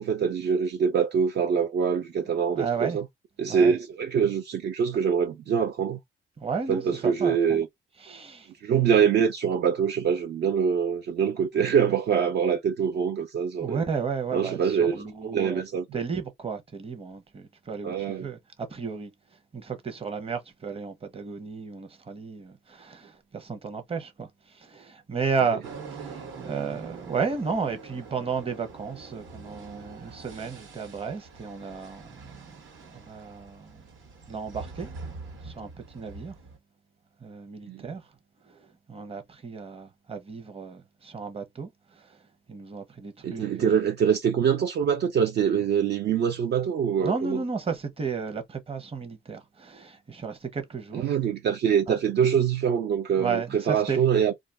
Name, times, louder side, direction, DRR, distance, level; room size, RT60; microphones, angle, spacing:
voice 1, 0.0-3.0 3.4-6.0 6.7-7.7 8.6-13.8 14.3-15.0 15.3-16.0 17.8-18.3 37.7-37.9 43.2-47.4 50.9-54.3, right 7 dB, 60° right, 0.5 m, -24 dB
voice 2, 2.5-3.0 3.5-3.8 6.4-7.6 8.0-8.5 13.6-15.6 15.9-19.1 19.5-25.6 25.9-33.8 34.3-34.9 35.4-36.3 37.2-38.0 38.5-42.2 42.5-43.8 47.0-51.0 51.9-52.0 53.2-54.0, right 5 dB, 30° right, 0.8 m, -33 dB
sound 1, 25.6-36.6, right 4 dB, 80° right, 1.5 m, -44 dB
2.5 x 2.3 x 3.3 m
cardioid pair, 90°, 20 cm